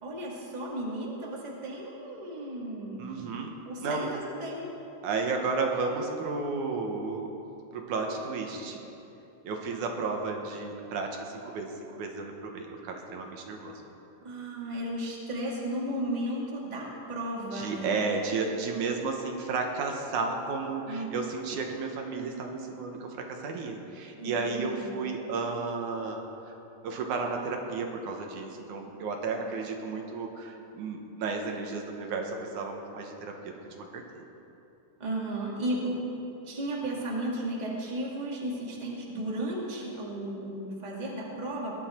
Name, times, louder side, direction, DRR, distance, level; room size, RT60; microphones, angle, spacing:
voice 1, 0.0-3.1 3.7-4.7 14.2-18.0 20.9-21.1 24.1-25.0 35.0-36.0 36.5-41.8, right 1 dB, 15° right, -3 dB, 1.8 m, -34 dB
voice 2, 3.0-4.1 5.0-7.3 7.7-8.8 9.4-13.8 17.5-26.3 26.8-34.2, right 4 dB, 80° right, 2 dB, 2.6 m, -33 dB
20.0 x 11.5 x 4.4 m, 2.8 s
omnidirectional pair, 3.5 m